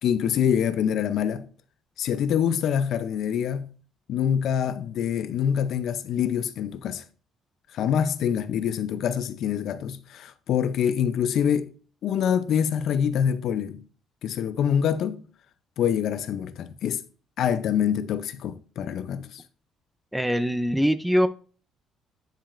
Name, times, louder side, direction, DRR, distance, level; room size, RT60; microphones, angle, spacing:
voice 1, 0.0-1.5 2.0-3.7 4.1-7.0 7.7-11.7 12.0-13.8 14.2-15.2 15.8-17.0 17.4-19.4, left 8 dB, 55° left, 0.5 m, -25 dB
voice 2, 20.1-21.3, equal, 5° right, 0.4 m, -22 dB
10.0 x 5.1 x 2.5 m
cardioid pair, 155°, 0 cm